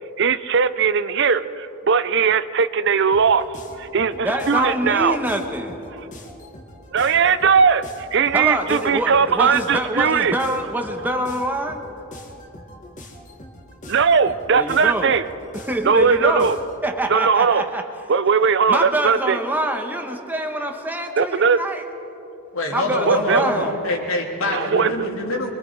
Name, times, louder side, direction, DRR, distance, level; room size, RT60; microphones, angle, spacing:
voice 1, 0.2-3.5 3.8-5.2 6.9-10.3 13.9-15.2 15.8-16.6 17.1-17.6 18.1-19.4 21.2-21.6 23.1-23.5 24.5-25.1, right 6 dB, 55° right, 13 dB, 0.6 m, -19 dB
sound 1, 3.1-16.8, left 1 dB, 35° left, 2.0 m, -42 dB
voice 2, 4.2-5.8 8.3-11.8 14.5-15.1 15.5-16.6 16.8-17.8 18.7-21.8 22.7-23.8, right 1 dB, 10° right, 4 dB, 1.2 m, -25 dB
voice 3, 22.5-25.5, left 1 dB, 75° left, 0 dB, 3.3 m, -25 dB
24.5 x 22.5 x 4.8 m, 2.8 s
head